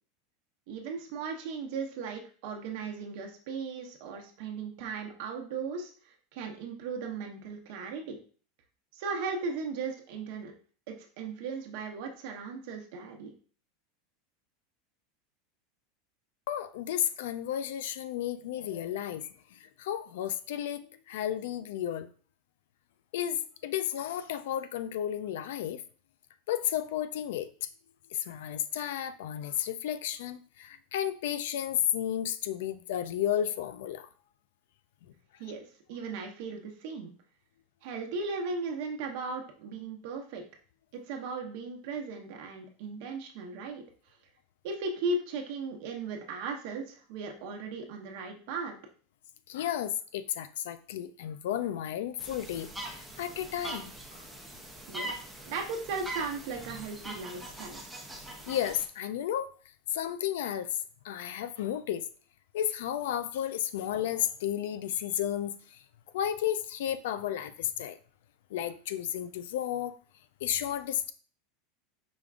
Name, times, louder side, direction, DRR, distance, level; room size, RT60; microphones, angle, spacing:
voice 1, 0.7-8.2 8.9-10.5 10.9-13.3 35.4-37.1 37.8-40.4 40.9-43.8 44.6-48.8 54.9-57.8, right 4 dB, 55° right, 0.9 m, -37 dB
voice 2, 16.5-22.1 23.1-25.8 26.5-27.7 28.1-34.1 49.5-52.7 53.2-54.3 58.5-59.5 59.9-60.8 61.0-62.1 62.5-65.8 66.1-68.0 68.5-70.0 70.4-71.1, left 10 dB, 75° left, 0.4 m, -33 dB
sound 1, 52.2-58.9, right 1 dB, 5° right, 0.6 m, -42 dB
5.1 x 3.5 x 2.4 m
supercardioid pair, 170°, 0 cm